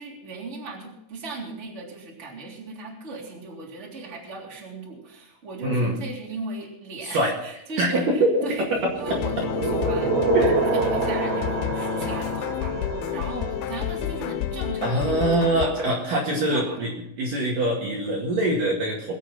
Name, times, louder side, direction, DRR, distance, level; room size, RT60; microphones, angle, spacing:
voice 1, 0.0-15.9 16.2-16.8, right 3 dB, 15° right, -2 dB, 2.8 m, -38 dB
voice 2, 5.6-5.9 7.0-7.3 7.8-8.3 10.3-10.5 14.8-16.9 17.2-19.1, right 1 dB, 55° right, -2 dB, 3.1 m, -23 dB
sound 1, 8.7-13.7, right 3 dB, 80° right, 4.3 m, -26 dB
sound 2, 9.1-15.7, left 11 dB, 85° left, 2.1 m, -30 dB
22.0 x 8.4 x 5.8 m, 0.81 s
omnidirectional pair, 5.4 m